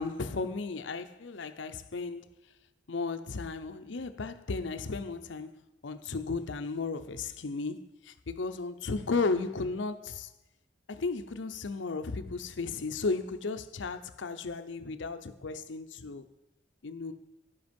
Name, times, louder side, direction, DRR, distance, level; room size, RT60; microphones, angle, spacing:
voice 1, 0.0-2.3 2.9-10.3 10.9-16.3 16.8-17.1, left 4 dB, 75° left, 0.6 m, -34 dB
9.8 x 7.9 x 5.2 m
head